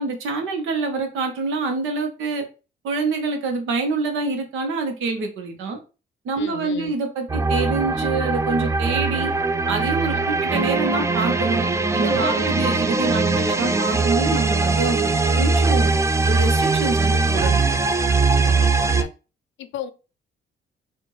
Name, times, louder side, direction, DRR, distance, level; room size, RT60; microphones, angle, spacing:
voice 1, 0.0-2.5 2.8-5.8 6.2-9.3 9.7-15.9 16.3-17.6, right 3 dB, 80° right, 1.0 m, -26 dB
voice 2, 6.4-6.9 10.1-10.4 12.4-12.6 18.4-19.1 19.6-19.9, left 10 dB, 75° left, 0.5 m, -35 dB
sound 1, 7.3-19.0, right 3 dB, 15° right, 0.4 m, -21 dB
4.4 x 2.5 x 3.1 m
cardioid pair, 90°, 20 cm